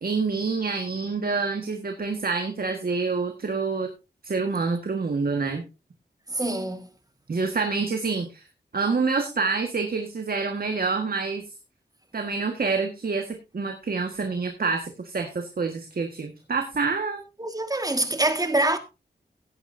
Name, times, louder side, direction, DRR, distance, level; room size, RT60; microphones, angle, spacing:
voice 1, 0.0-3.9 4.2-5.6 7.3-8.4 8.7-11.4 12.1-17.2, right 4 dB, 60° right, 1.5 m, -27 dB
voice 2, 6.3-6.9 17.4-18.8, right 1 dB, 20° right, 1.8 m, -25 dB
15.5 x 10.0 x 2.7 m
wide cardioid pair, 85°, 18 cm